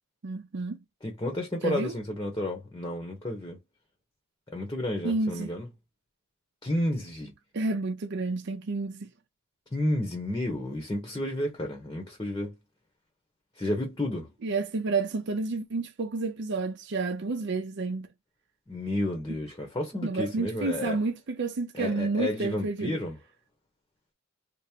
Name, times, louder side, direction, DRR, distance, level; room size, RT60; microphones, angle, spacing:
voice 1, 0.2-0.8 1.6-1.9 5.0-5.5 7.5-9.1 14.4-18.1 20.0-23.0, right 3 dB, 55° right, 0.5 m, -30 dB
voice 2, 1.0-3.6 4.5-5.7 6.6-7.3 9.7-12.5 13.6-14.3 18.7-21.0 21.8-23.1, left 1 dB, 20° left, 0.8 m, -31 dB
3.5 x 2.0 x 4.3 m
head